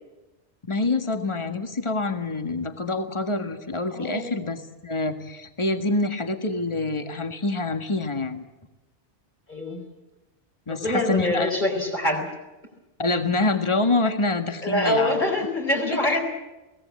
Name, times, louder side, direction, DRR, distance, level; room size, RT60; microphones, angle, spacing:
voice 1, 0.7-8.4 10.7-11.5 13.0-15.2, left 3 dB, 25° left, 7 dB, 1.7 m, -26 dB
voice 2, 3.9-4.3 9.5-9.9 10.7-12.3 14.6-16.2, left 1 dB, 40° left, -1 dB, 4.4 m, -25 dB
22.5 x 18.0 x 8.5 m, 1.1 s
omnidirectional pair, 1.2 m